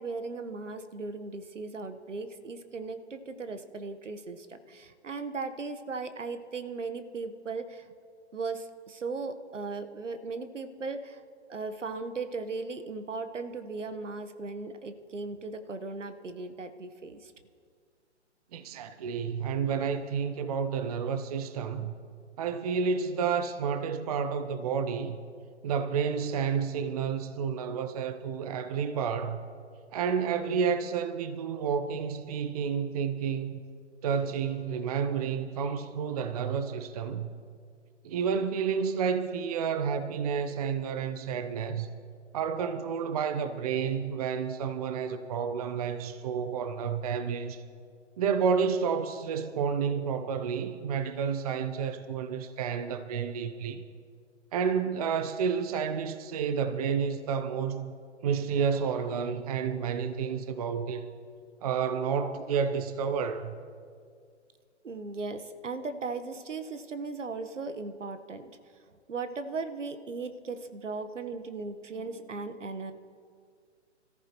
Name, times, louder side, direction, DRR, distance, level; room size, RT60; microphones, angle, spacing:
voice 1, 0.0-7.9 8.3-11.2 11.5-17.3 64.8-68.5 69.1-72.9, right 4 dB, 80° right, 1.3 m, -37 dB
voice 2, 18.5-21.9 22.4-25.2 25.6-29.4 29.9-33.6 34.0-37.3 38.0-41.9 42.3-47.6 48.2-53.8 54.5-57.9 58.2-61.1 61.6-63.6, right 6 dB, 30° right, 0.6 m, -30 dB
25.5 x 14.0 x 3.1 m
figure-of-eight pair, 135°, 36 cm